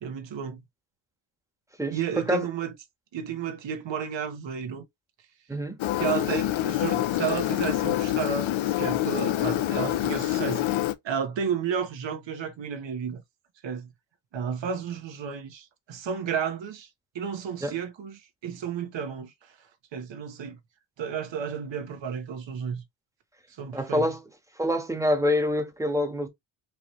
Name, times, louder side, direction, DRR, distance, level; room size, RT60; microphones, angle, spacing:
voice 1, 0.0-0.6 1.9-2.7 3.1-4.8 6.0-10.7 11.0-13.2 13.6-13.9 14.3-16.9 17.1-19.6 19.9-20.6 21.0-22.8 23.5-24.1, right 7 dB, 60° right, 1.4 m, -32 dB
voice 2, 1.8-2.5 5.5-5.7 17.6-17.7 23.7-24.2 24.6-26.3, left 1 dB, 5° right, 1.4 m, -26 dB
Engine, 5.8-10.9, left 13 dB, 70° left, 0.8 m, -26 dB
4.7 x 3.1 x 3.2 m
cardioid pair, 95°, 49 cm